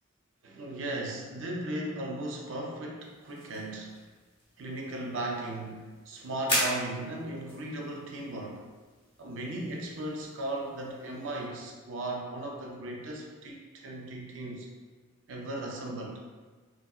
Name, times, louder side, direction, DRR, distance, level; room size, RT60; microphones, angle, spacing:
voice 1, 0.4-3.9 4.6-8.6 9.2-14.7 15.3-16.2, right 1 dB, 65° right, -1 dB, 0.4 m, -37 dB
sound 1, 3.0-11.5, equal, 25° left, 0.6 m, -39 dB
2.8 x 2.7 x 2.3 m, 1.4 s
head